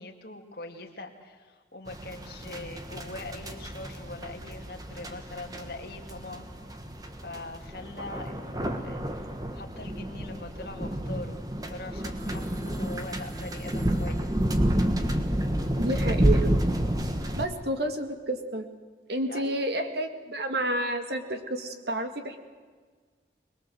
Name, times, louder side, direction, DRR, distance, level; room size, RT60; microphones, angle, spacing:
voice 1, 0.0-6.5 7.2-14.4 19.2-19.5, left 2 dB, 55° left, 2 dB, 2.4 m, -42 dB
sound 1, 1.9-17.4, equal, 20° right, 1.5 m, -30 dB
voice 2, 15.8-16.6 17.4-18.7 19.1-22.4, right 1 dB, 65° right, 6 dB, 2.2 m, -30 dB
22.5 x 21.5 x 7.8 m, 1.5 s
head